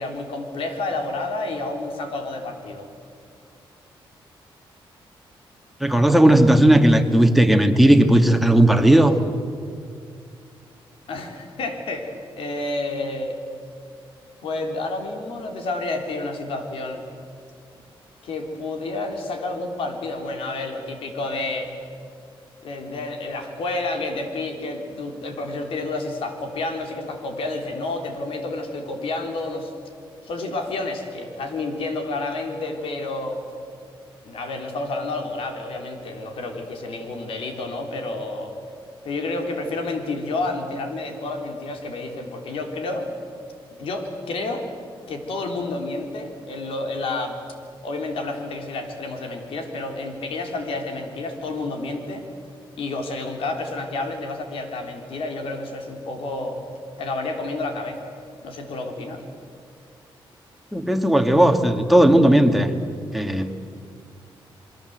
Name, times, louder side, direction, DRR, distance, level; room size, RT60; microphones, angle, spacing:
voice 1, 0.0-2.9 11.1-13.4 14.4-17.0 18.2-21.7 22.6-29.7 30.2-33.4 34.3-38.5 39.0-43.1 43.8-44.6 45.1-47.4 47.8-52.3 52.8-56.6 57.0-58.1 58.4-59.2, left 2 dB, 80° left, 4 dB, 3.7 m, -30 dB
voice 2, 5.8-9.2 60.7-62.7 63.1-63.5, right 1 dB, ahead, 5 dB, 2.0 m, -16 dB
28.0 x 22.5 x 8.0 m, 2.2 s
cardioid pair, 110°, 9 cm